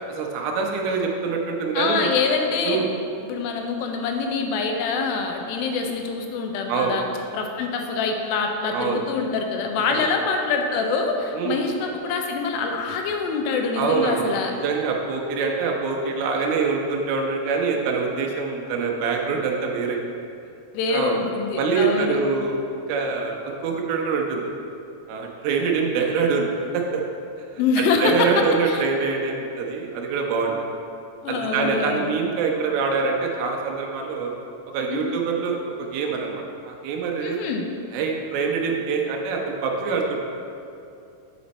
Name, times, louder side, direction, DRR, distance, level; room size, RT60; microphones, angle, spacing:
voice 1, 0.1-2.1 2.6-2.9 6.7-7.0 8.7-9.0 9.9-10.1 11.3-11.6 13.8-20.0 20.9-21.2 21.6-22.6 22.9-24.4 25.1-26.5 26.7-27.0 27.5-30.5 31.3-34.3 34.7-37.4 37.9-40.2, right 5 dB, 85° right, 0 dB, 2.7 m, -25 dB
voice 2, 1.7-2.8 3.2-7.1 7.3-14.5 20.7-22.2 27.6-28.3 28.7-28.9 31.2-32.1 34.9-35.2 37.2-37.7, left 4 dB, 80° left, 3 dB, 2.4 m, -25 dB
7.9 x 5.1 x 4.1 m, 2.6 s
omnidirectional pair, 4.4 m